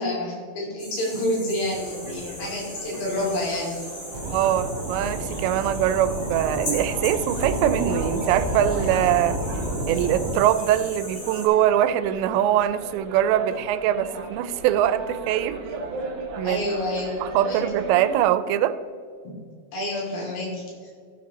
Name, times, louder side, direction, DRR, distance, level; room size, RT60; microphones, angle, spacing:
voice 1, 0.0-3.8 16.4-17.6 19.7-20.6, left 1 dB, 70° left, -4 dB, 4.9 m, -28 dB
sound 1, 0.8-11.5, equal, 30° left, 1.8 m, -38 dB
sound 2, 1.7-18.2, right 3 dB, 70° right, 1.8 m, -38 dB
sound 3, 4.1-10.3, right 1 dB, 50° right, 1.5 m, -30 dB
voice 2, 4.3-9.4 9.9-15.6 16.4-16.6 17.2-18.8, right 11 dB, 90° right, 11 dB, 2.8 m, -22 dB
15.0 x 5.2 x 4.2 m, 2.1 s
omnidirectional pair, 5.0 m